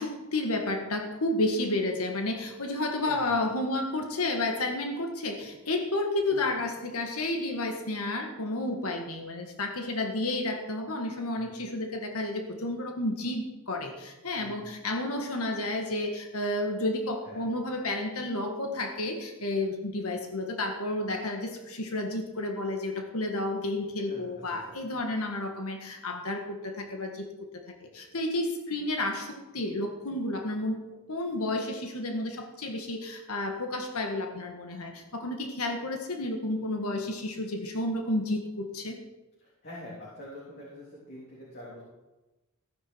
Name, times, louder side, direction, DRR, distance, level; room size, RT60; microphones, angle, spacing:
voice 1, 0.0-27.3 27.7-30.8 31.1-39.0, left 2 dB, 85° left, 3 dB, 1.8 m, -31 dB
voice 2, 3.0-3.4 6.3-6.6 11.3-11.5 14.4-14.7 17.2-17.5 24.1-24.7 39.4-41.8, left 1 dB, 50° left, -7 dB, 3.5 m, -45 dB
15.0 x 9.8 x 4.7 m, 1.1 s
head